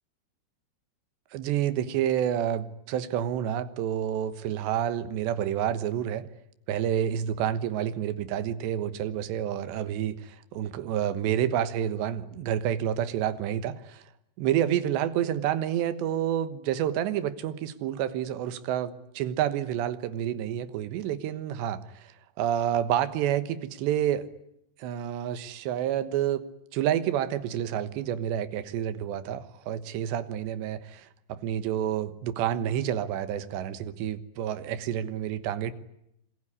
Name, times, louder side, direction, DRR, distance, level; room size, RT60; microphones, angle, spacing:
voice 1, 1.3-6.3 6.7-14.0 14.4-21.8 22.4-24.3 24.8-26.4 26.7-35.7, right 10 dB, 90° right, 12 dB, 3.5 m, -29 dB
27.0 x 21.5 x 9.8 m, 0.79 s
omnidirectional pair, 4.8 m